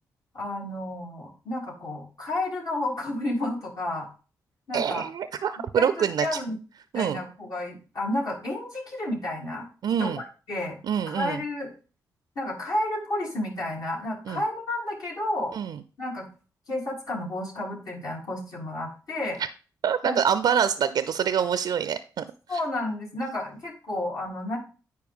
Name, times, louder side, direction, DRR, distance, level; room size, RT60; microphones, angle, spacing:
voice 1, 0.3-4.1 4.7-5.0 5.8-6.6 6.9-9.7 10.0-10.8 11.1-11.7 12.3-15.5 16.0-16.2 16.7-19.4 20.0-20.2 22.5-24.6, left 1 dB, 65° left, -4 dB, 3.2 m, -31 dB
voice 2, 4.7-6.4 6.9-7.2 9.8-10.2 10.8-11.4 14.3-14.4 15.5-15.8 19.4-19.5 19.8-22.6, right 8 dB, 70° right, 13 dB, 0.4 m, -26 dB
9.3 x 4.6 x 3.6 m, 0.37 s
cardioid pair, 60°, 7 cm